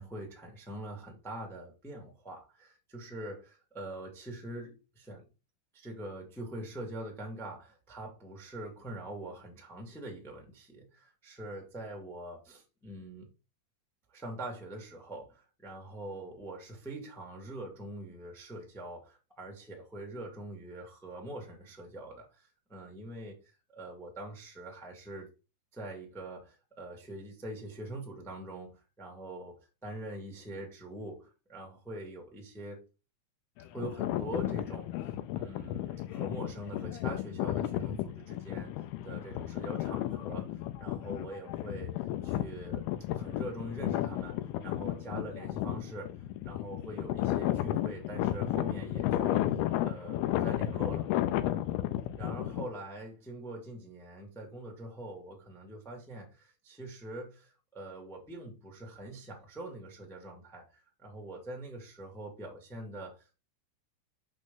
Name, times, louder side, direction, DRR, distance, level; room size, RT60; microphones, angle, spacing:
voice 1, 0.0-5.2 5.7-13.3 14.1-25.3 25.7-29.5 29.8-32.9 33.7-41.9 42.2-42.8 43.1-46.1 46.4-49.5 49.8-51.1 52.2-63.4, right 1 dB, 5° left, 0.4 m, -44 dB
sound 1, 33.6-52.7, left 13 dB, 90° left, 2.6 m, -33 dB
6.4 x 6.0 x 3.7 m
omnidirectional pair, 4.5 m